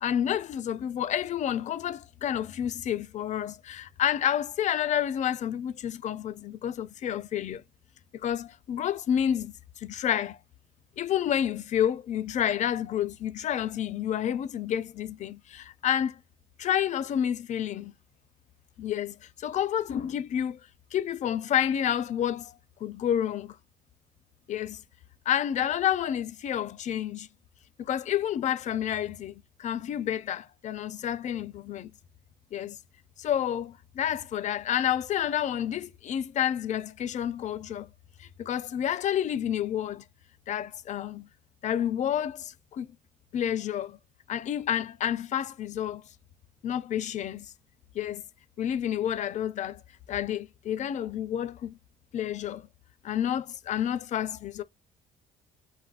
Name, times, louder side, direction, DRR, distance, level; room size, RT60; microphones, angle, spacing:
voice 1, 0.0-7.6 8.2-10.4 11.0-16.2 16.6-17.9 18.8-20.6 20.9-23.6 24.5-24.8 25.3-27.3 27.9-29.3 29.6-31.9 32.5-32.8 33.2-37.9 38.2-40.0 40.5-41.3 41.6-42.9 43.3-44.0 44.3-46.0 46.6-47.5 47.9-48.2 48.6-49.8 50.1-51.8 52.1-52.7 53.0-54.6, left 10 dB, 45° left, 0.4 m, -29 dB
4.0 x 2.0 x 2.4 m
cardioid pair, 110°, 17 cm